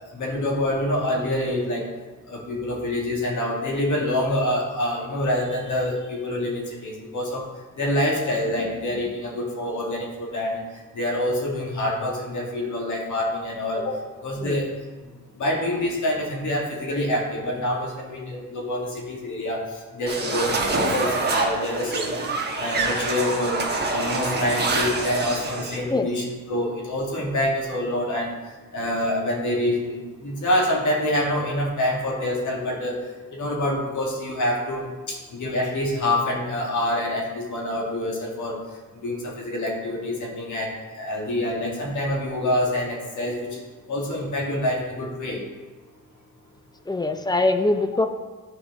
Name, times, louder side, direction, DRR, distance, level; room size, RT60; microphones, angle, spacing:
voice 1, 0.1-1.9 2.3-7.5 7.8-10.6 10.9-14.0 14.2-14.7 15.4-19.6 19.9-22.2 22.6-23.6 23.9-28.3 28.7-33.0 33.3-38.6 39.0-40.7 41.0-43.5 43.9-45.4, left 1 dB, 60° left, -1 dB, 2.0 m, -26 dB
sound 1, 20.1-25.8, right 3 dB, 30° right, 1.1 m, -26 dB
voice 2, 46.9-48.1, left 2 dB, 10° left, 7 dB, 0.5 m, -22 dB
11.0 x 4.8 x 3.6 m, 1.3 s
cardioid pair, 100°, 35 cm